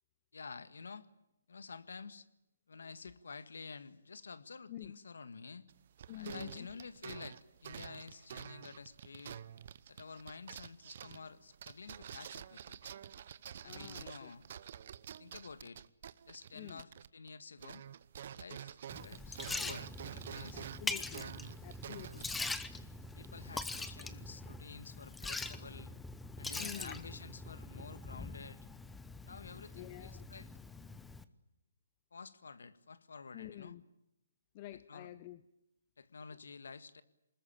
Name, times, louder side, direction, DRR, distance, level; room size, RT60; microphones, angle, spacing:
voice 1, 0.3-1.1 1.5-2.3 2.7-5.7 6.1-9.4 9.9-12.8 13.6-14.4 15.2-15.8 16.3-17.8 18.3-20.7 21.1-21.3 23.1-25.9 26.4-28.6 29.2-30.5 32.1-33.8 34.9-35.1 36.0-37.0, left 5 dB, 75° left, 14 dB, 1.7 m, -50 dB
sound 1, 5.7-17.3 17.6-23.7, right 9 dB, 50° right, 0.9 m, -49 dB
voice 2, 6.1-6.7 13.6-14.3 16.5-16.8 20.5-21.3 21.6-22.3 26.6-27.0 29.7-30.2 33.3-33.8 34.5-35.4, left 13 dB, 30° left, 14 dB, 0.9 m, -48 dB
Liquid, 18.9-31.2, left 3 dB, 5° left, 0.9 m, -43 dB
25.0 x 20.5 x 8.9 m, 0.86 s
hypercardioid pair, 150°, 0 cm